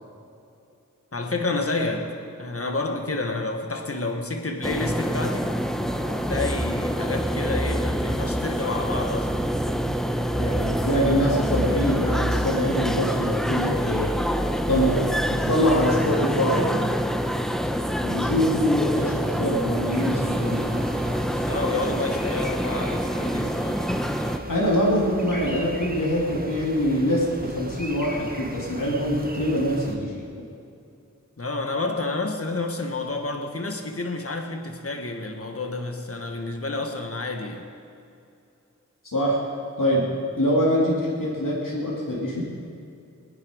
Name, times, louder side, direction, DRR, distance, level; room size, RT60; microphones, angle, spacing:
voice 1, 1.1-5.6 6.0-9.3 21.4-23.6 31.4-37.7, left 3 dB, 45° left, 4 dB, 1.4 m, -29 dB
sound 1, 4.6-24.4, equal, ahead, 0.8 m, -26 dB
voice 2, 10.4-14.2 14.7-15.0 15.3-16.7 18.0-20.7 24.5-30.2 39.0-39.4 39.8-40.1 40.4-42.4, equal, 80° left, -4 dB, 2.6 m, -24 dB
sound 2, 19.9-29.9, right 1 dB, 30° right, 1.4 m, -38 dB
20.5 x 10.0 x 5.1 m, 2.6 s
wide cardioid pair, 40°, 32 cm